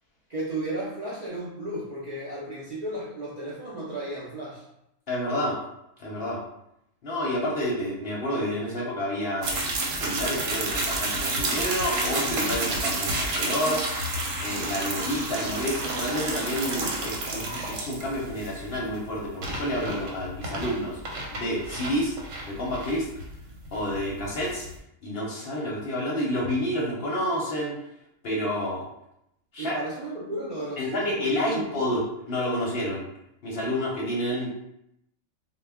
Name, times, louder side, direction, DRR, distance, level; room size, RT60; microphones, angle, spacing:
voice 1, 0.3-4.6 29.6-32.0, right 1 dB, 55° right, -8 dB, 0.5 m, -34 dB
voice 2, 5.1-5.6 6.0-6.4 7.0-13.9 14.4-21.0 21.3-22.2 22.5-23.1 23.7-24.7 25.0-27.8 28.2-28.8 29.5-29.8 30.8-32.0 32.3-33.0 33.4-34.5, equal, 55° left, -4 dB, 0.7 m, -29 dB
sound 1, 9.4-24.8, right 2 dB, 85° right, 1.0 m, -30 dB
2.2 x 2.1 x 3.4 m, 0.81 s
omnidirectional pair, 1.3 m